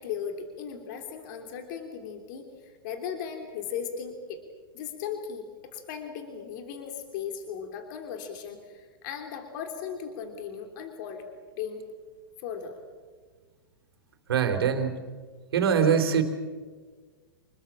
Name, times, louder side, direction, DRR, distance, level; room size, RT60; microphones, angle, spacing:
voice 1, 0.0-4.4 4.7-11.2 11.5-11.8 12.4-12.8, left 7 dB, 50° left, 5 dB, 3.2 m, -37 dB
voice 2, 14.3-15.0 15.5-16.2, right 7 dB, 75° right, 6 dB, 3.6 m, -23 dB
27.0 x 20.5 x 7.4 m, 1.5 s
hypercardioid pair, 120°, 13 cm